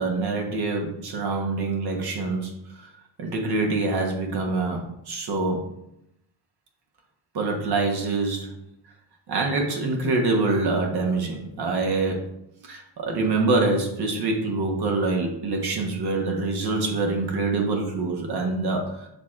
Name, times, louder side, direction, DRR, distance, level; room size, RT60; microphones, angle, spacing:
voice 1, 0.0-2.5 3.2-5.7 7.3-8.5 9.3-12.3 12.6-19.1, right 3 dB, 60° right, 1 dB, 1.1 m, -25 dB
6.5 x 3.2 x 2.4 m, 0.80 s
cardioid pair, 85°, 44 cm